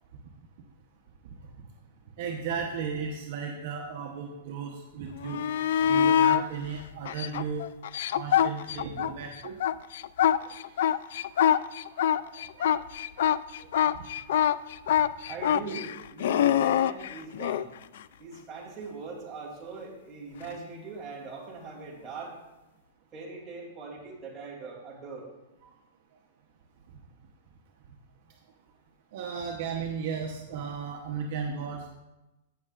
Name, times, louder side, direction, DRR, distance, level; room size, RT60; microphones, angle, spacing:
voice 1, 2.2-5.4 5.8-7.7 8.1-9.6 10.2-10.8 11.3-11.6 11.9-12.8 13.9-14.0 29.1-31.9, right 6 dB, 50° right, 1 dB, 0.9 m, -35 dB
sound 1, 5.2-6.4 7.0-9.1 9.4-17.6 20.4-20.5, left 10 dB, 65° left, 0.3 m, -24 dB
voice 2, 15.3-17.7 18.2-22.4 23.1-25.3, right 4 dB, 20° right, -5 dB, 2.9 m, -41 dB
16.0 x 6.6 x 2.5 m, 1.0 s
hypercardioid pair, 155°, 0 cm